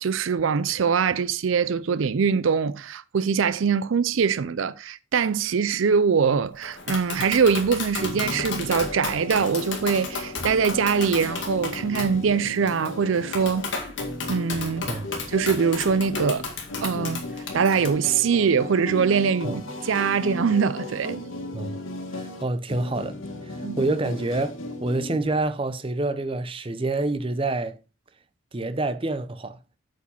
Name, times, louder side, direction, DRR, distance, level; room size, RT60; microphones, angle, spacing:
voice 1, 0.0-13.7 14.3-14.9 15.3-16.5 16.8-17.2 17.5-21.2 23.6-23.8, right 6 dB, 75° right, 0.4 m, -23 dB
Tap, 6.6-17.9, left 4 dB, 65° left, 2.1 m, -34 dB
sound 1, 8.0-25.4, left 2 dB, 85° left, 1.9 m, -36 dB
voice 2, 22.1-23.2 23.4-27.8 28.5-29.6, right 2 dB, 25° right, 0.6 m, -27 dB
8.3 x 5.0 x 5.3 m
head